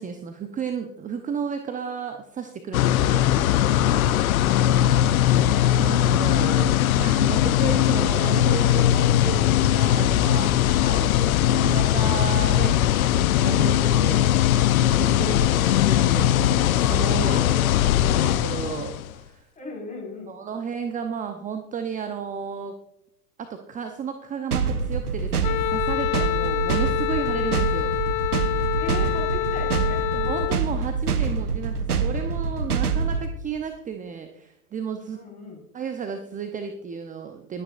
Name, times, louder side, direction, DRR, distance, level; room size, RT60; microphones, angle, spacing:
voice 1, 0.0-3.3 5.8-10.8 11.4-14.3 14.8-17.8 18.0-19.5 20.3-22.8 23.4-27.9 30.1-35.2 35.7-37.6, right 7 dB, 15° right, 6 dB, 0.8 m, -33 dB
sound 1, 2.7-19.1, left 12 dB, 70° left, 0.7 m, -20 dB
voice 2, 10.8-11.2 17.3-17.8 19.5-20.3 28.8-30.0 35.1-35.6, left 3 dB, 20° left, 0 dB, 4.9 m, -37 dB
sound 2, 24.5-33.3, right 5 dB, 85° right, 1.0 m, -26 dB
Wind instrument woodwind instrument, 25.4-30.6, left 21 dB, 35° left, 0.4 m, -27 dB
20.5 x 9.2 x 2.5 m, 0.81 s
hypercardioid pair, 90°, 44 cm